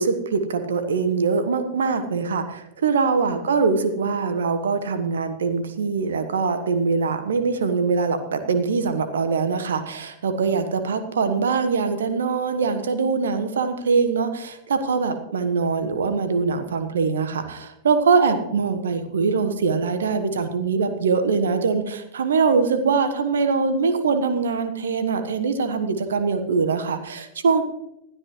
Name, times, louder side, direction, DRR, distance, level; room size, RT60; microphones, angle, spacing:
voice 1, 0.0-27.6, right 5 dB, 65° right, 10 dB, 1.3 m, -23 dB
20.0 x 12.5 x 3.2 m, 0.87 s
figure-of-eight pair, 90°, 0 cm